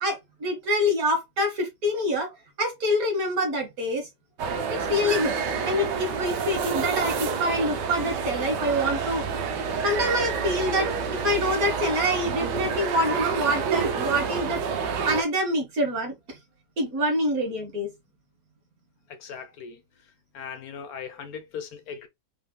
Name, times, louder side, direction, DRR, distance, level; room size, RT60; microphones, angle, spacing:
voice 1, 0.0-2.3 2.6-4.1 4.7-5.4 5.7-9.2 9.8-14.6 15.1-16.4 16.8-17.9, equal, 60° right, 1.8 m, -26 dB
sound 1, 4.4-15.2, right 6 dB, 85° right, 1.4 m, -28 dB
voice 2, 19.1-19.8 20.3-22.1, left 6 dB, 65° left, 1.1 m, -38 dB
5.4 x 3.4 x 2.2 m
omnidirectional pair, 1.8 m